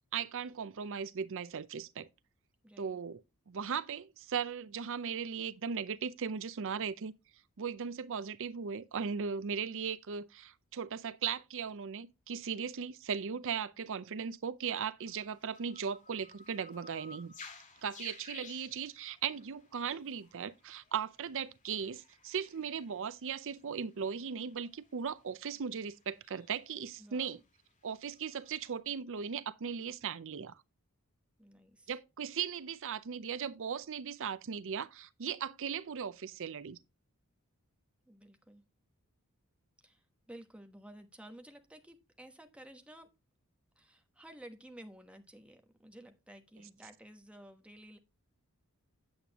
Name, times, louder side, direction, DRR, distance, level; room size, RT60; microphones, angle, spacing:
voice 1, 0.1-2.1 2.8-3.2 3.5-7.1 7.6-17.3 17.8-27.4 27.8-30.6 31.9-36.8, right 7 dB, 65° right, 0.5 m, -38 dB
voice 2, 2.6-3.0 27.0-27.4 31.4-31.9 38.0-38.6 39.8-43.1 43.8-48.0, right 1 dB, 5° right, 1.1 m, -53 dB
sound 1, 15.0-28.8, left 4 dB, 35° left, 2.0 m, -57 dB
8.7 x 8.4 x 2.9 m
head